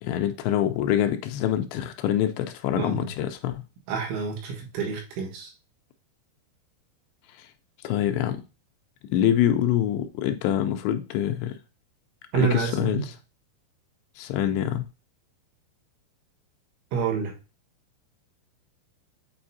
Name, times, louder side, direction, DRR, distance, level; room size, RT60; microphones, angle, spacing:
voice 1, 0.0-3.5 7.4-7.5 7.8-8.4 9.1-11.6 12.3-13.1 14.2-14.8, left 10 dB, 80° left, 2.7 m, -25 dB
voice 2, 2.8-3.1 3.9-5.5 12.3-13.0 16.9-17.3, right 6 dB, 85° right, 3.9 m, -28 dB
8.7 x 4.3 x 2.7 m
omnidirectional pair, 5.2 m